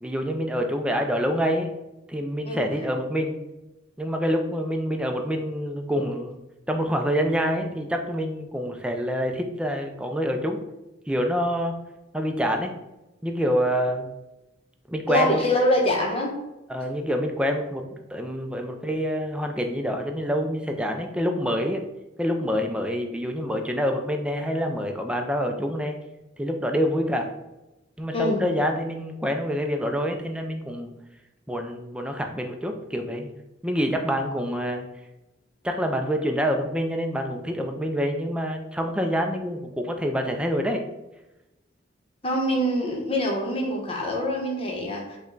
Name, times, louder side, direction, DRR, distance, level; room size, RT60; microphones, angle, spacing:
voice 1, 0.0-1.7 2.1-3.4 4.0-6.4 6.7-10.6 11.1-11.8 12.1-12.7 13.2-14.1 14.9-15.4 16.7-21.8 22.2-26.0 26.4-27.3 28.0-30.9 31.5-33.3 33.6-34.9 35.6-40.8, equal, 5° right, 4 dB, 0.4 m, -26 dB
voice 2, 2.5-2.9 15.1-16.3 28.1-28.5 42.2-45.2, left 1 dB, 30° left, 0 dB, 0.9 m, -25 dB
5.1 x 2.2 x 3.8 m, 0.98 s
head